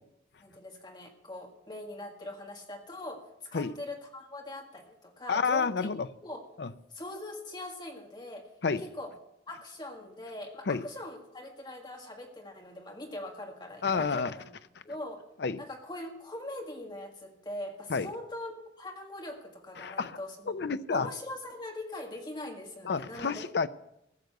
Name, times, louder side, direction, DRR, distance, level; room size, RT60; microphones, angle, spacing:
voice 1, 0.4-5.9 6.2-6.5 6.9-8.5 8.8-9.1 9.5-14.5 14.8-15.2 15.6-20.5 20.9-23.4, left 1 dB, 25° left, 1.8 m, -42 dB
voice 2, 5.3-6.1 6.6-6.7 8.6-8.8 10.7-10.8 13.8-14.3 15.4-15.6 17.9-18.1 19.8-20.2 20.5-21.1 22.8-23.7, left 5 dB, 70° left, 0.5 m, -29 dB
15.0 x 6.6 x 7.7 m
head